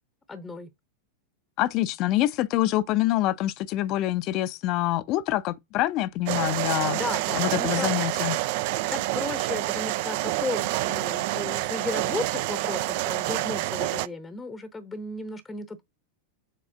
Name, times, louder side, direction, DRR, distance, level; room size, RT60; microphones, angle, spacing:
voice 1, 0.3-0.7 6.9-8.1 8.9-15.8, left 3 dB, 10° left, 0.8 m, -35 dB
voice 2, 1.6-7.0 7.3-8.4, left 15 dB, 40° left, 0.5 m, -26 dB
sound 1, 6.3-14.1, right 17 dB, 50° right, 0.3 m, -28 dB
7.5 x 4.0 x 3.7 m
figure-of-eight pair, 90°, 0 cm